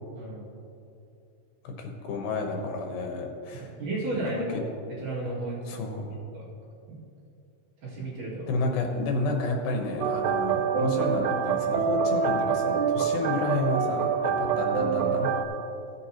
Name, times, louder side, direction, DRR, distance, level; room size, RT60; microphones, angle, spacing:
voice 1, 1.6-3.7 4.3-4.6 5.7-6.2 8.5-15.3, left 2 dB, 85° left, 2 dB, 3.0 m, -30 dB
voice 2, 3.5-4.6 4.9-5.6 6.3-6.4 6.9-7.0 7.8-8.5, right 2 dB, 65° right, -8 dB, 3.7 m, -33 dB
sound 1, 10.0-15.4, right 6 dB, 90° right, 1.8 m, -26 dB
15.5 x 8.2 x 2.9 m, 2.6 s
omnidirectional pair, 4.2 m